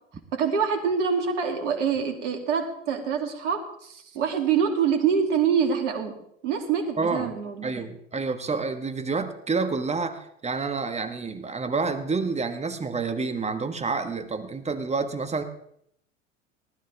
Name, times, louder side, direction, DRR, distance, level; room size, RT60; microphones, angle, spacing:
voice 1, 0.3-6.2 6.4-7.9, right 6 dB, 70° right, 4 dB, 2.8 m, -25 dB
voice 2, 7.0-7.3 7.6-15.4, right 4 dB, 15° right, 9 dB, 1.5 m, -28 dB
19.5 x 12.5 x 3.5 m, 0.70 s
hypercardioid pair, 85°, 37 cm